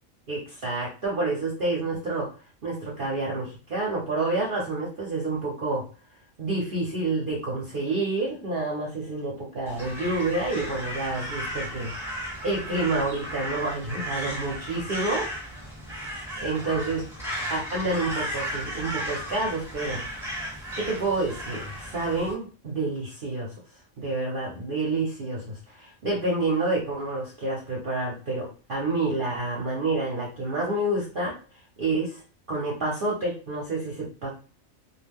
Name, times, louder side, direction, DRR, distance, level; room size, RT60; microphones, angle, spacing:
voice 1, 0.3-2.3 2.6-5.8 6.4-11.9 12.4-15.3 16.4-17.0 17.5-20.0 20.8-23.5 24.0-31.3 31.8-32.2 32.5-34.3, right 2 dB, 50° right, -3 dB, 0.7 m, -28 dB
Crow, 9.7-22.3, equal, ahead, 0.7 m, -35 dB
2.3 x 2.2 x 3.4 m, 0.37 s
omnidirectional pair, 1.4 m